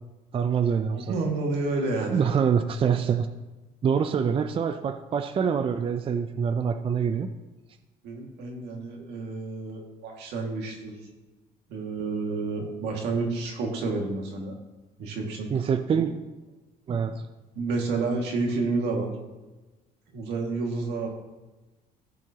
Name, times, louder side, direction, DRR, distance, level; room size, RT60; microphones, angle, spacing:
voice 1, 0.3-1.1 2.1-3.3 3.8-7.3 15.5-16.1 16.9-17.1, right 7 dB, 35° right, 9 dB, 0.5 m, -25 dB
voice 2, 0.9-2.2 8.0-11.1 11.7-14.5 15.0-15.7 16.0-16.1 16.9-17.0 17.5-19.1 20.1-21.1, right 3 dB, 80° right, 0 dB, 2.1 m, -30 dB
16.0 x 6.2 x 2.9 m, 1.1 s
cardioid pair, 110°, 17 cm